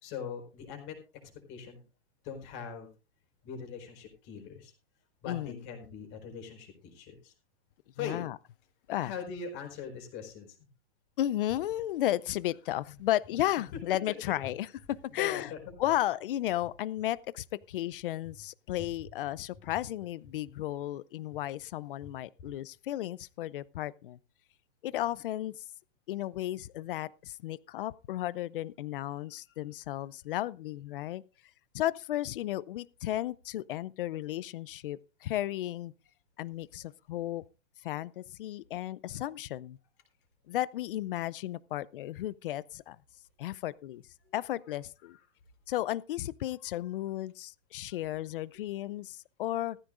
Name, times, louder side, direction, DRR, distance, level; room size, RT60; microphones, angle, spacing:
voice 1, 0.0-1.8 2.2-2.9 3.4-4.7 5.2-7.3 7.9-8.2 9.0-10.6 14.1-14.2 14.4-14.5 15.1-15.8 22.0-22.1 22.4-22.5 24.9-25.0 29.5-29.6 44.2-44.3, left 6 dB, 30° left, 4.6 m, -41 dB
voice 2, 5.3-5.6 8.0-8.4 8.9-9.1 11.2-14.7 15.1-15.5 15.8-24.2 24.8-25.6 26.1-31.2 31.7-35.9 36.4-37.4 37.8-39.8 40.5-43.0 43.4-44.0 44.3-45.2 45.7-49.8, left 14 dB, 50° left, 0.6 m, -34 dB
17.0 x 14.5 x 2.5 m
hypercardioid pair, 150°, 36 cm